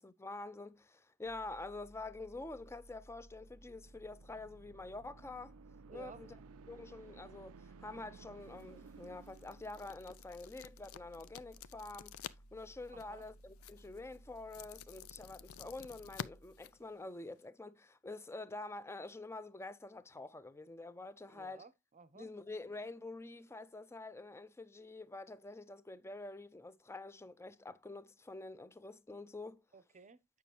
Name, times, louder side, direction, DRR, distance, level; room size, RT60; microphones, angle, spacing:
voice 1, 0.0-5.6 5.9-6.4 6.7-12.2 12.5-21.6 22.1-29.6, left 2 dB, 10° left, 0.5 m, -47 dB
sound 1, 1.2-17.0, right 1 dB, 55° left, 0.9 m, -60 dB
sound 2, 3.3-10.3, right 6 dB, 75° right, 0.4 m, -58 dB
voice 2, 5.9-6.2 12.9-13.2 21.3-22.3 29.7-30.4, right 4 dB, 35° right, 0.7 m, -55 dB
sound 3, 8.4-17.5, left 8 dB, 75° left, 0.5 m, -52 dB
8.5 x 5.9 x 2.9 m
head